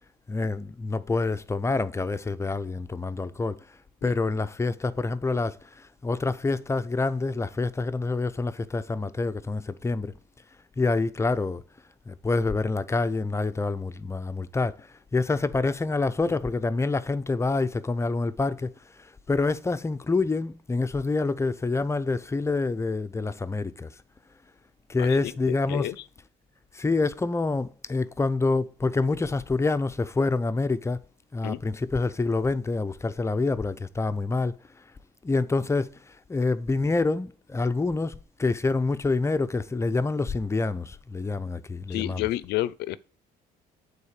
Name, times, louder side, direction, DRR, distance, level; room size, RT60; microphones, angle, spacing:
voice 1, 0.3-3.6 4.0-5.6 6.0-10.1 10.8-11.6 12.1-14.7 15.1-18.7 19.3-23.9 24.9-26.0 26.7-31.0 31.3-34.6 35.2-35.9 36.3-42.3, left 3 dB, 15° left, 0.6 m, -27 dB
voice 2, 25.0-26.0 31.4-31.6 41.9-43.0, left 15 dB, 80° left, 0.6 m, -31 dB
8.6 x 4.1 x 6.6 m
cardioid pair, 110°, 17 cm